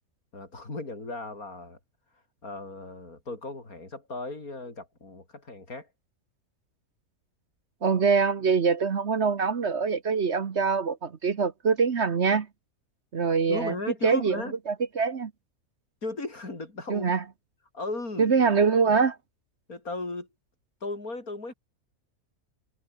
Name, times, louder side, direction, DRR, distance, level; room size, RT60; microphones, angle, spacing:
voice 1, 0.3-1.8 2.4-5.9 13.5-14.5 16.0-17.1 17.7-18.5 18.8-19.0 19.7-20.3 20.8-21.5, left 2 dB, 70° left, 5.4 m, -36 dB
voice 2, 7.8-12.5 13.1-13.7 14.0-15.3 16.9-17.2 18.2-19.2, right 5 dB, 50° right, 1.4 m, -24 dB
omnidirectional pair, 1.6 m